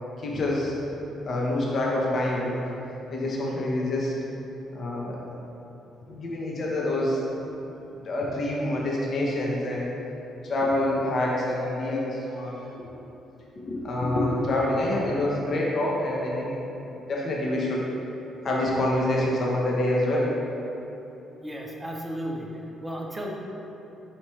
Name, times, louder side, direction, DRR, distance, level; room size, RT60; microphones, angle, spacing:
voice 1, 0.2-0.7 1.2-2.6 3.1-4.1 4.7-5.2 6.1-7.2 8.0-9.9 10.4-12.9 13.6-16.6 17.1-17.8 18.4-20.3, left 1 dB, 55° left, -3 dB, 0.7 m, -26 dB
voice 2, 21.4-23.3, equal, 15° right, 0 dB, 0.6 m, -34 dB
4.4 x 2.9 x 3.0 m, 3.0 s
hypercardioid pair, 50°, 0 cm